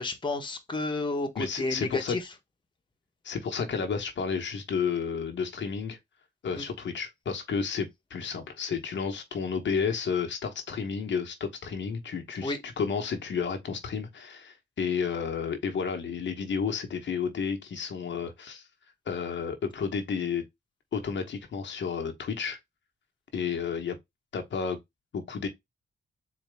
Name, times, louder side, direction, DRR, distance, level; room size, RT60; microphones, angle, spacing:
voice 1, 0.0-2.2 6.6-6.7 12.4-12.6, left 2 dB, 25° left, 0.9 m, -31 dB
voice 2, 1.4-2.2 3.2-6.0 6.4-18.6 19.1-20.4 20.9-22.6 23.3-24.0 24.3-24.8 25.1-25.5, left 6 dB, 70° left, 1.0 m, -31 dB
4.1 x 2.8 x 3.3 m
wide cardioid pair, 105°, 20 cm